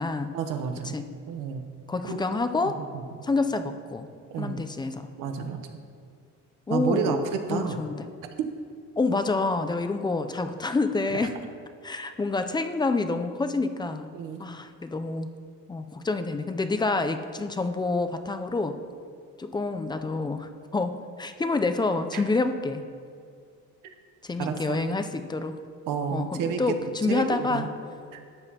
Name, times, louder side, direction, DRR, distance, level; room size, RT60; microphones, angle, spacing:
voice 1, 0.3-1.0 1.3-1.6 2.0-2.4 2.6-3.0 4.3-4.6 5.2-5.6 6.7-7.2 7.5-7.8 14.1-14.4 22.1-22.2 24.4-24.8 25.9-27.7 28.1-28.2, right 6 dB, 85° right, 6 dB, 0.9 m, -30 dB
voice 2, 1.9-2.8 3.2-4.1 4.4-5.1 6.7-7.2 7.5-8.1 9.0-11.3 11.8-14.1 14.4-15.3 15.7-18.8 19.4-22.8 24.2-25.6 26.1-27.7, left 3 dB, 15° left, 8 dB, 0.4 m, -28 dB
12.0 x 8.0 x 2.9 m, 2.2 s
cardioid pair, 115°, 31 cm